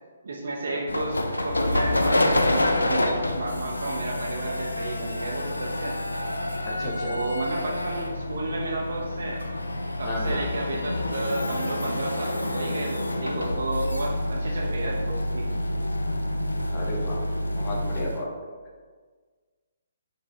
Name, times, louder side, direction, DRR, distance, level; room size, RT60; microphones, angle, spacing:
voice 1, 0.2-1.2 1.4-6.0 6.9-9.4 10.0-15.4, right 2 dB, 60° right, -3 dB, 0.6 m, -32 dB
sound 1, 0.9-18.2, left 1 dB, 85° left, 0.4 m, -28 dB
voice 2, 6.7-7.1 10.0-10.4 16.7-17.2 17.5-18.3, left 1 dB, 25° left, -4 dB, 0.9 m, -33 dB
4.6 x 3.8 x 2.9 m, 1.5 s
figure-of-eight pair, 135°, 0 cm